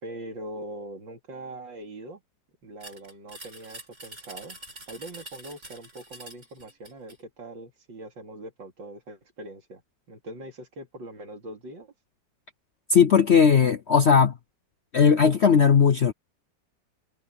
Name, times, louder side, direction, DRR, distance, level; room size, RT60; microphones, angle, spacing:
voice 1, 0.0-2.2 2.6-4.6 4.9-9.8 10.1-11.9, right 1 dB, 85° right, 3.5 m, -42 dB
sound 1, 2.8-7.2, right 1 dB, 40° right, 5.3 m, -45 dB
voice 2, 12.9-14.3 14.9-16.1, left 6 dB, 60° left, 0.7 m, -18 dB
omnidirectional pair, 2.0 m